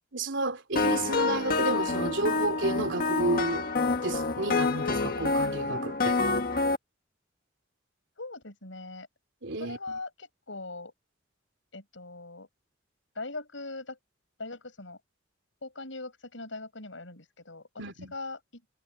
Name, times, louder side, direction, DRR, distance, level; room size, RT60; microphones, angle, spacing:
voice 1, 0.1-3.6 4.0-6.2 9.4-10.0 17.8-18.1, right 2 dB, 70° right, 3.8 m, -31 dB
sound 1, 0.8-6.8, left 3 dB, 50° left, 1.6 m, -27 dB
voice 2, 8.2-9.1 9.6-10.9 11.7-12.5 13.1-14.0 14.4-15.0 15.6-18.6, left 3 dB, 75° left, 8.0 m, -41 dB
head